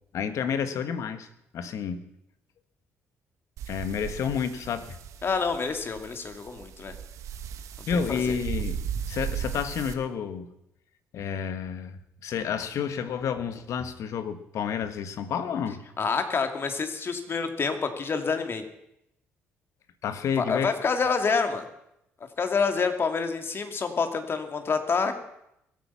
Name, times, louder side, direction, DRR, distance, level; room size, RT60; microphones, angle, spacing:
voice 1, 0.1-1.3 1.5-2.1 3.7-5.0 7.9-10.5 11.1-15.8 20.0-20.7, left 7 dB, 65° left, 11 dB, 1.5 m, -30 dB
sound 1, 3.6-9.9, right 8 dB, 70° right, 1.3 m, -36 dB
voice 2, 5.2-6.9 8.1-8.3 16.0-18.6 20.4-21.6 22.4-25.2, left 5 dB, 45° left, 7 dB, 2.6 m, -27 dB
22.5 x 8.8 x 5.8 m, 0.81 s
hypercardioid pair, 55°, 6 cm